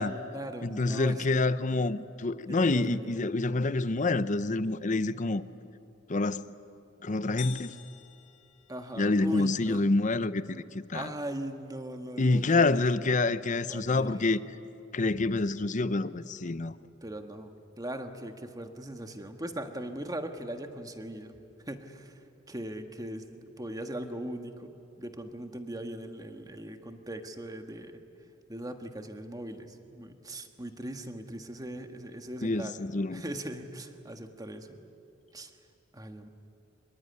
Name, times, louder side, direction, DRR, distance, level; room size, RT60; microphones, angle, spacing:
voice 1, 0.0-1.4 2.5-3.2 8.7-9.8 10.9-12.7 13.7-14.3 17.0-21.3 21.7-28.0 28.5-34.8 35.3-35.5 35.9-36.3, right 1 dB, 20° right, 1.7 m, -39 dB
voice 2, 0.6-5.4 6.1-6.5 7.0-7.7 9.0-11.1 12.2-14.4 14.9-16.7 32.4-33.2, left 3 dB, 40° left, 0.7 m, -27 dB
sound 1, 7.4-9.3, left 10 dB, 70° left, 1.9 m, -47 dB
25.5 x 22.5 x 9.6 m
head